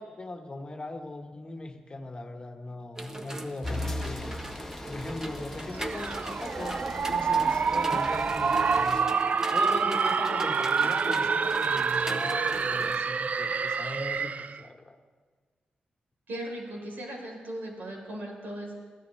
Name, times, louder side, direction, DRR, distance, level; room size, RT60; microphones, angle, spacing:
voice 1, 0.0-4.3 4.9-9.0 9.5-15.0, left 2 dB, 30° left, 4 dB, 1.2 m, -39 dB
sound 1, 3.0-13.0, right 1 dB, 15° right, 0.9 m, -40 dB
sound 2, 3.6-9.0, left 1 dB, 15° left, 0.9 m, -39 dB
FX Sweep, 5.7-14.6, right 5 dB, 50° right, 0.3 m, -27 dB
voice 2, 16.3-18.7, right 1 dB, 80° right, 0 dB, 3.8 m, -38 dB
22.0 x 15.0 x 3.2 m, 1.5 s
wide cardioid pair, 105°, 3 cm